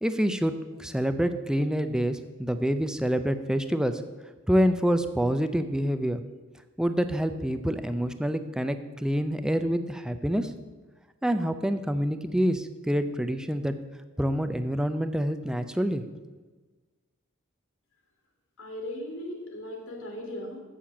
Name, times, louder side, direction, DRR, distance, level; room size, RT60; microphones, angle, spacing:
voice 1, 0.0-4.0 4.5-6.2 6.8-10.5 11.2-13.8 14.2-16.0, equal, 5° right, 9 dB, 0.4 m, -27 dB
voice 2, 18.6-20.6, left 1 dB, 85° left, 0 dB, 2.5 m, -37 dB
7.5 x 6.5 x 7.1 m, 1.3 s
head